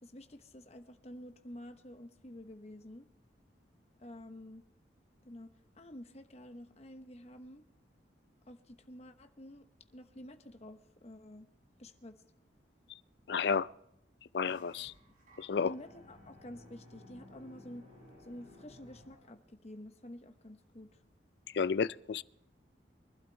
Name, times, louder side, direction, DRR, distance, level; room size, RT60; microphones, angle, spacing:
voice 1, 0.0-3.1 4.0-4.7 5.2-7.6 8.5-9.7 9.9-11.5 11.8-12.2 15.6-17.8 18.2-20.9, left 1 dB, 35° left, 1.1 m, -50 dB
voice 2, 13.3-13.7 14.3-14.9 15.4-15.7 21.5-22.2, left 5 dB, 65° left, 0.4 m, -31 dB
sound 1, 14.4-19.4, left 1 dB, 45° right, 6.2 m, -57 dB
23.5 x 12.0 x 3.4 m
head